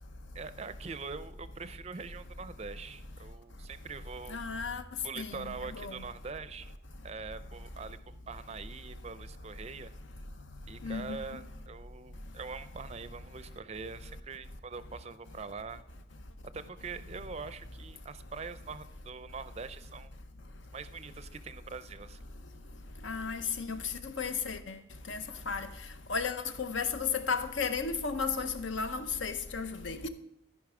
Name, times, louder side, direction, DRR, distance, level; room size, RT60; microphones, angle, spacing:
voice 1, 0.3-4.4 5.0-6.7 7.0-9.9 10.7-15.8 16.5-20.1 20.7-22.2, right 4 dB, 35° right, 0.4 m, -43 dB
voice 2, 4.3-4.8 5.2-5.5 5.8-6.0 10.8-11.2 23.0-23.8 24.0-24.8 25.1-25.2 25.5-25.7 26.1-30.1, left 5 dB, 75° left, 0.8 m, -34 dB
14.0 x 5.4 x 4.8 m
head